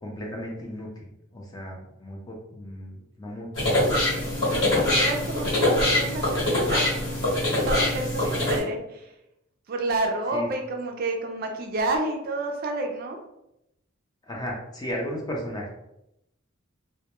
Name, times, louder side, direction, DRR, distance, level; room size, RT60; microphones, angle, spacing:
voice 1, 0.0-4.0 8.2-8.4 10.3-10.5 14.3-15.7, equal, 20° left, -1 dB, 0.4 m, -35 dB
sound 1, 3.5-8.6, left 1 dB, 65° left, 1.3 m, -23 dB
voice 2, 4.2-7.0 7.7-9.1 9.7-13.2, right 2 dB, 45° right, 3 dB, 0.3 m, -30 dB
2.1 x 2.1 x 2.9 m, 0.85 s
head